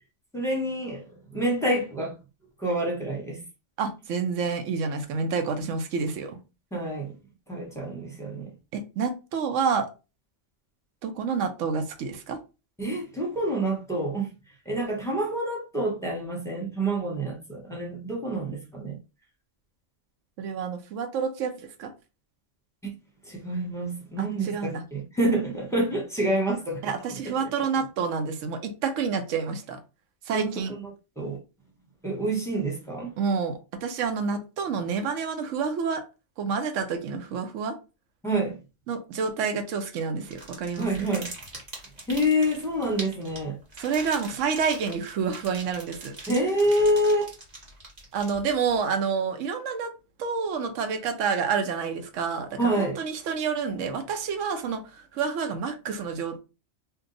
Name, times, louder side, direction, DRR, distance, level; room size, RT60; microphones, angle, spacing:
voice 1, 0.3-1.0 1.3-2.1 2.6-3.4 6.7-7.2 7.5-8.5 12.8-14.3 14.6-19.0 22.8-22.9 23.2-26.8 30.3-30.5 30.8-30.9 31.2-31.4 32.0-33.2 38.2-38.6 40.8-41.3 42.1-43.6 46.3-47.3 52.6-53.0, right 1 dB, 5° left, 0.8 m, -27 dB
voice 2, 3.8-6.4 8.7-9.9 11.0-12.4 20.4-21.9 24.2-24.8 26.8-29.8 30.3-30.8 33.2-36.0 36.4-37.8 38.9-41.1 43.8-46.2 48.1-49.9 50.2-56.4, right 5 dB, 85° right, 1.0 m, -28 dB
sound 1, 40.3-48.7, right 2 dB, 35° right, 1.2 m, -42 dB
2.7 x 2.2 x 3.7 m
omnidirectional pair, 1.3 m